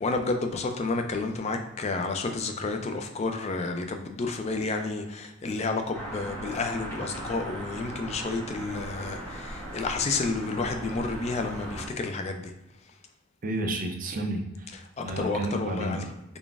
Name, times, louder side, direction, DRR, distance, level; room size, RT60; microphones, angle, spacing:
voice 1, 0.0-12.5 15.0-16.0, left 3 dB, 30° left, 5 dB, 0.3 m, -30 dB
sound 1, 5.9-11.9, right 1 dB, 10° left, 1.5 m, -38 dB
voice 2, 13.4-14.7 15.0-16.1, right 1 dB, 40° right, 5 dB, 0.4 m, -31 dB
3.8 x 3.4 x 2.4 m, 0.96 s
head